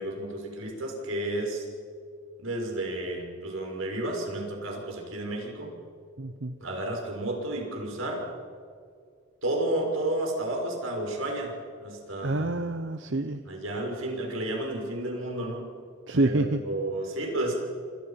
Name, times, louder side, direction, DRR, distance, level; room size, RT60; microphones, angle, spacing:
voice 1, 0.0-1.7 2.4-5.7 6.6-8.3 9.4-11.5 11.8-12.6 13.5-15.6 16.2-17.6, right 1 dB, 85° right, 1 dB, 6.2 m, -31 dB
voice 2, 6.2-6.5 12.2-13.4 16.1-16.6, right 2 dB, 65° right, 9 dB, 0.9 m, -27 dB
28.0 x 26.5 x 5.9 m, 2.2 s
head